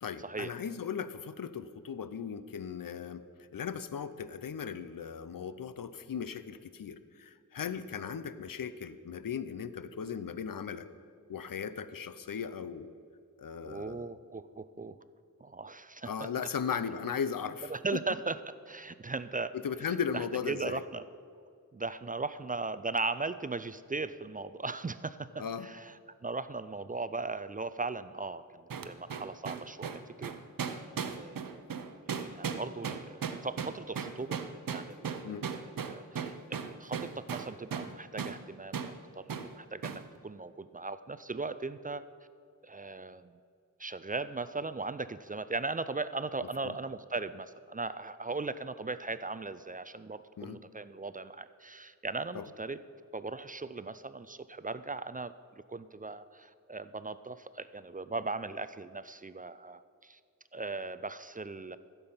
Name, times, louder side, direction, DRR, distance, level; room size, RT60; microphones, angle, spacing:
voice 1, 0.0-3.2 3.5-10.9 11.3-12.9 13.4-14.1 16.0-18.0 19.5-20.8 25.4-25.7 35.2-35.5 46.6-46.8 50.4-50.6 52.3-52.5, left 7 dB, 80° left, 13 dB, 0.6 m, -37 dB
voice 2, 13.6-15.0 15.4-16.3 17.7-18.4 18.7-19.5 19.8-21.0 21.7-25.9 26.2-30.3 30.6-31.6 32.2-34.4 34.7-35.6 35.9-38.8 39.2-42.0 42.6-43.4 43.8-52.8 53.1-60.2 60.5-61.8, right 3 dB, 25° right, 13 dB, 0.4 m, -38 dB
sound 1, 28.7-37.9 38.2-38.4 38.7-38.9 39.3-39.5 39.8-40.0, right 6 dB, 85° right, 0.7 m, -37 dB
14.5 x 6.9 x 5.6 m, 2.2 s
wide cardioid pair, 70°, 33 cm